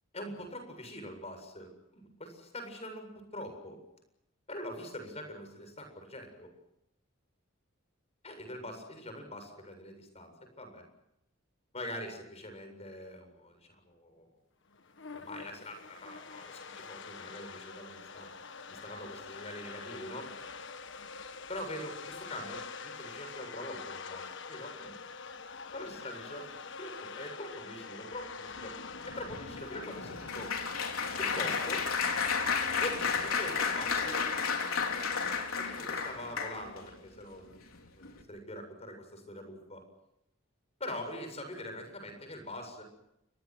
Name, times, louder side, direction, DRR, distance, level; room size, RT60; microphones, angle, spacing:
voice 1, 0.1-3.8 4.5-6.5 8.2-10.9 11.7-14.3 15.1-18.3 18.7-20.3 21.5-25.0 25.7-28.7 29.1-30.5 31.2-31.9 32.8-34.2 35.5-39.8 40.8-42.8, left 1 dB, 30° left, 6 dB, 7.6 m, -43 dB
sound 1, 14.7-32.6, left 5 dB, 60° left, 1.5 m, -45 dB
Applause, 28.6-36.9 37.5-37.8 38.0-38.2, left 5 dB, 90° left, 4.1 m, -33 dB
29.0 x 24.5 x 6.3 m, 0.81 s
head